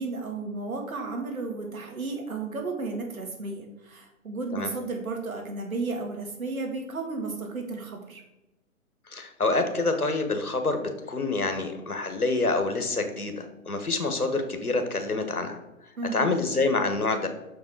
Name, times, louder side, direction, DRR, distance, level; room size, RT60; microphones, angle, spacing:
voice 1, 0.0-8.2 16.0-16.3, right 3 dB, 70° right, 2 dB, 2.0 m, -33 dB
voice 2, 9.1-15.6 16.1-17.3, left 3 dB, 90° left, 6 dB, 1.3 m, -27 dB
6.5 x 5.3 x 4.7 m, 0.97 s
figure-of-eight pair, 130°, 43 cm